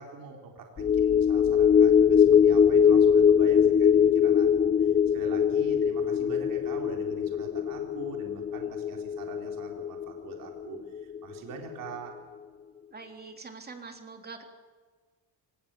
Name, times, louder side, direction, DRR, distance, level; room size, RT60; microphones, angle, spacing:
voice 1, 0.0-12.1, right 5 dB, 60° right, 1 dB, 4.1 m, -43 dB
sound 1, 0.8-11.4 11.7-11.9, left 8 dB, 25° left, 0.7 m, -22 dB
voice 2, 12.9-14.4, right 4 dB, 25° right, 4 dB, 3.2 m, -44 dB
24.5 x 20.0 x 7.0 m, 1.5 s
cardioid pair, 130°, 38 cm